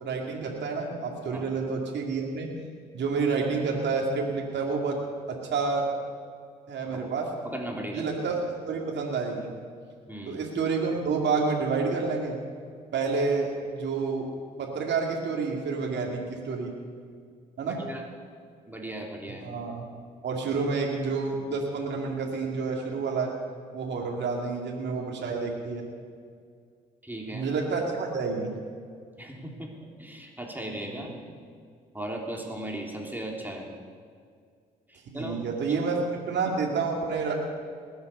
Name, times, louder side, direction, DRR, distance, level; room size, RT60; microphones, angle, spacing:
voice 1, 0.0-2.5 2.9-5.0 5.3-5.9 6.7-7.3 7.9-8.4 8.7-9.5 10.3-12.4 12.9-14.3 14.6-16.7 17.6-17.8 19.4-19.9 20.2-23.3 23.7-25.9 27.3-28.5 30.9-31.1 35.1-36.0 36.3-37.3, right 4 dB, 65° right, -1 dB, 2.4 m, -29 dB
voice 2, 7.4-8.1 10.1-10.4 17.6-18.0 18.7-19.4 27.0-27.5 29.2-29.7 30.0-31.1 31.9-33.7 34.9-35.4 35.7-35.8, right 1 dB, 10° right, 0 dB, 3.5 m, -37 dB
20.0 x 8.1 x 6.8 m, 2.1 s
hypercardioid pair, 50°, 19 cm